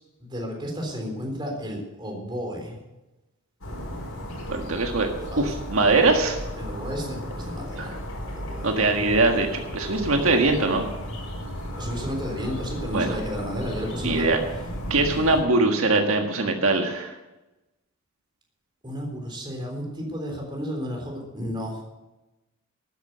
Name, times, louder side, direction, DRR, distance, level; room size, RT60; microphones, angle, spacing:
voice 1, 0.2-2.8 5.3-5.4 6.6-8.0 8.4-8.7 11.8-14.3 18.8-21.8, equal, 20° right, 1 dB, 3.6 m, -32 dB
sound 1, 3.6-15.4, equal, 85° left, 4.4 m, -34 dB
voice 2, 4.5-5.1 5.4-6.4 7.8-7.9 8.6-10.8 12.9-13.2 14.0-14.4 14.9-17.1, right 3 dB, 80° right, 3 dB, 1.6 m, -22 dB
13.0 x 10.0 x 6.8 m, 1.0 s
head